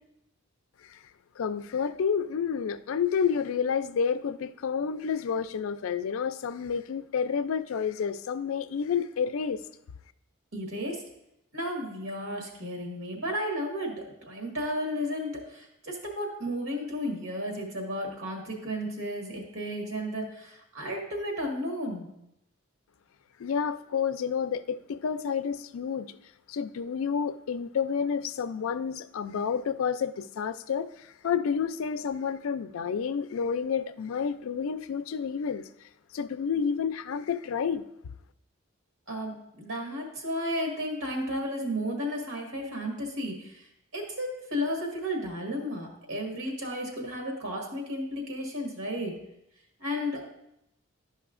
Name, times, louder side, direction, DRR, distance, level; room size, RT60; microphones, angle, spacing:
voice 1, 1.4-9.6 23.4-26.1 26.5-35.6 36.1-37.8, left 6 dB, 75° left, 12 dB, 0.4 m, -30 dB
voice 2, 10.5-11.0 11.5-22.1 39.1-43.7 43.9-49.2 49.8-50.2, equal, 85° right, 0 dB, 1.7 m, -33 dB
12.0 x 5.4 x 2.4 m, 0.81 s
head